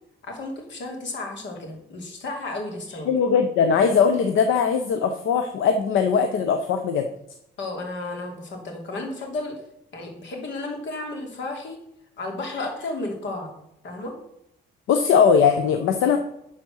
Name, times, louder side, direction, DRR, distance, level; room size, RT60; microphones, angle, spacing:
voice 1, 0.2-3.1 7.6-9.6 9.9-11.8 12.2-13.5 13.8-14.1, left 2 dB, 65° left, 2 dB, 2.7 m, -33 dB
voice 2, 3.1-7.1 14.9-16.2, left 6 dB, 85° left, 7 dB, 0.8 m, -20 dB
10.5 x 4.3 x 6.2 m, 0.80 s
cardioid pair, 90°, 20 cm